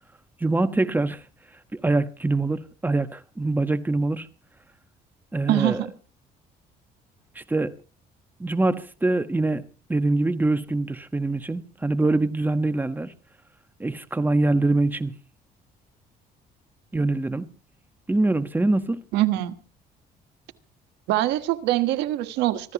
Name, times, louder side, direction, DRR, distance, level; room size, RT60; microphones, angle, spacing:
voice 1, 0.4-1.2 1.7-4.3 5.3-5.8 7.3-7.7 8.4-9.6 9.9-13.1 13.8-15.1 16.9-17.5 18.1-19.0, right 2 dB, 10° right, 1.3 m, -24 dB
voice 2, 5.5-5.9 19.1-19.5 21.1-22.7, right 15 dB, 90° right, 1.4 m, -23 dB
26.0 x 14.0 x 3.0 m
cardioid pair, 110°, 17 cm